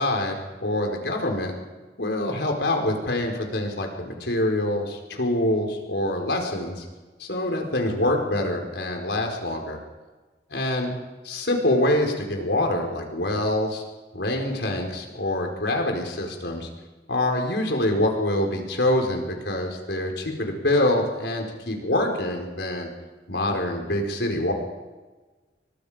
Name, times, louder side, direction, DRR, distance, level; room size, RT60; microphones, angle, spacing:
voice 1, 0.0-1.5 2.0-6.8 7.2-9.8 10.5-10.9 11.3-13.8 14.1-16.7 17.1-22.9 23.3-24.5, left 1 dB, 80° left, 2 dB, 4.8 m, -25 dB
28.0 x 24.0 x 5.2 m, 1.3 s
head